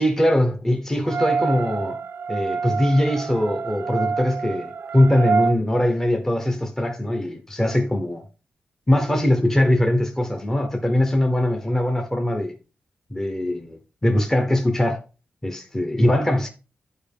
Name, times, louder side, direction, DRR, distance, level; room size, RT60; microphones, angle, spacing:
voice 1, 0.0-2.0 2.3-8.2 8.9-12.5 13.1-15.0 15.4-16.5, left 1 dB, 10° left, 1.0 m, -21 dB
sound 1, 1.1-5.5, right 5 dB, 60° right, 0.3 m, -27 dB
11.5 x 4.6 x 3.5 m
wide cardioid pair, 145°, 4 cm